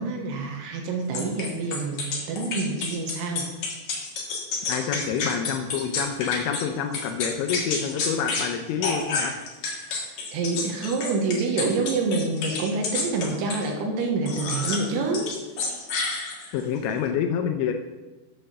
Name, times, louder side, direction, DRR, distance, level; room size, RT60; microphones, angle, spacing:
voice 1, 0.0-3.5 9.9-10.1 10.3-15.3, right 3 dB, 75° right, 2 dB, 3.2 m, -27 dB
sound 1, 1.1-6.6 6.9-8.5 8.8-13.7 14.3-14.9 15.1-16.6, left 4 dB, 60° left, 1.9 m, -29 dB
voice 2, 4.7-9.3 16.5-17.7, left 7 dB, 80° left, 6 dB, 2.9 m, -27 dB
8.4 x 5.7 x 6.6 m, 1.2 s
omnidirectional pair, 5.8 m